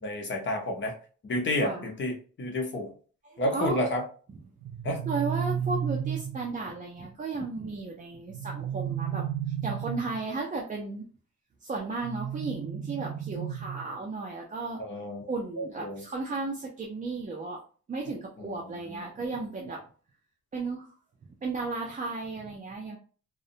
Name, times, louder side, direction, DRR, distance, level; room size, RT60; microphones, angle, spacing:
voice 1, 0.0-0.9 1.3-2.9 3.4-4.0 4.8-5.0 14.8-15.3 15.6-16.0 18.4-19.0, left 1 dB, 40° left, 1 dB, 0.6 m, -31 dB
voice 2, 1.6-1.9 3.2-3.9 5.1-9.2 9.6-11.0 11.6-14.8 15.3-17.6 17.9-19.8 20.5-20.9 21.4-23.0, right 3 dB, 25° right, -1 dB, 0.4 m, -34 dB
sound 1, 4.6-6.6 8.3-10.3 12.0-14.0, right 9 dB, 70° right, 0.6 m, -33 dB
2.5 x 2.0 x 2.7 m, 0.40 s
wide cardioid pair, 160°, 30 cm